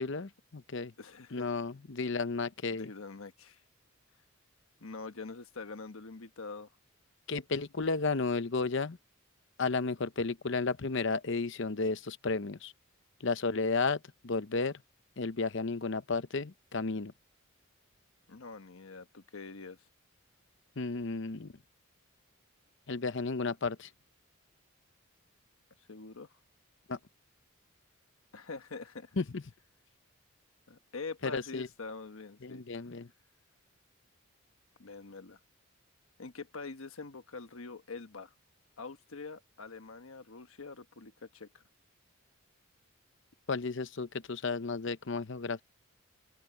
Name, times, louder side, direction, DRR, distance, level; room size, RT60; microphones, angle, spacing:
voice 1, 0.0-0.9 1.3-2.9 7.3-9.0 9.6-12.7 13.2-14.8 15.2-17.1 20.8-21.5 22.9-23.9 26.9-27.0 29.2-29.4 31.2-31.7 32.4-33.1 43.5-45.6, left 4 dB, 60° left, 0.8 m, -33 dB
voice 2, 1.0-1.5 2.7-3.6 4.8-6.7 18.3-19.9 25.9-26.3 28.3-29.2 30.7-32.6 34.8-35.4 36.2-38.3 38.8-41.6, left 4 dB, 75° left, 1.2 m, -45 dB
open air
head